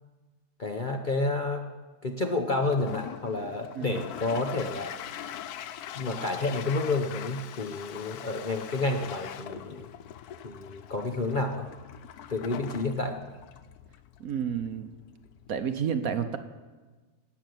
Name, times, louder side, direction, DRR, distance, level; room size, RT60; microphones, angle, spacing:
voice 1, 0.6-1.6 2.0-5.0 6.0-9.9 10.4-11.7 12.3-13.4, left 2 dB, 40° left, 4 dB, 0.7 m, -30 dB
Toilet flush, 2.6-15.7, left 10 dB, 70° left, 1.1 m, -42 dB
voice 2, 14.2-14.9 15.5-16.4, right 7 dB, 65° right, 9 dB, 1.2 m, -30 dB
17.5 x 6.4 x 9.3 m, 1.3 s
omnidirectional pair, 1.8 m